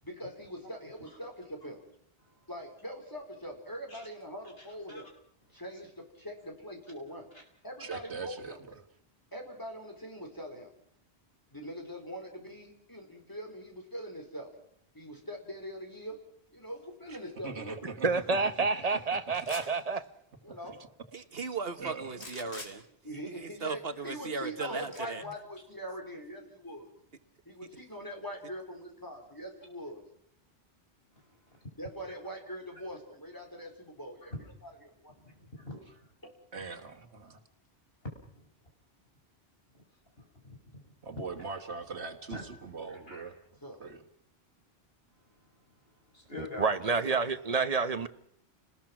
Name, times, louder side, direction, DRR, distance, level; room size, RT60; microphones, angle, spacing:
voice 1, 0.0-1.8 2.5-5.1 5.5-7.3 7.6-8.6 9.3-10.7 11.5-14.5 14.9-16.1 16.5-17.9 20.4-20.8 23.0-26.9 27.4-30.0 31.8-34.3 34.6-34.7 35.0-35.1 36.2-36.3 43.6-43.8, equal, 20° left, 4.6 m, -42 dB
voice 2, 0.6-1.1 2.2-2.5 3.9-4.1 4.6-5.0 5.5-5.8 7.3-7.4 7.9-8.0 25.2-25.3 34.3-34.5 35.1-36.1 38.3-38.5 40.2-40.8 41.1-41.2 42.3-43.3 45.1-47.7, left 2 dB, 65° left, 5.7 m, -47 dB
voice 3, 7.8-8.6 17.1-17.2 17.4-18.1 18.6-18.7 19.6-19.7 21.8-22.3 36.5-37.4 41.0-43.3 43.8-44.0, right 4 dB, 85° right, 1.8 m, -41 dB
voice 4, 18.0-20.0 46.4-48.1, right 4 dB, 35° right, 1.1 m, -29 dB
sound 1, 19.3-19.8 22.1-22.7 24.9-25.0, left 2 dB, 90° left, 3.9 m, -44 dB
voice 5, 21.1-22.8 23.3-25.2 46.8-47.1, right 4 dB, 65° right, 1.5 m, -37 dB
29.0 x 20.0 x 6.1 m
omnidirectional pair, 1.1 m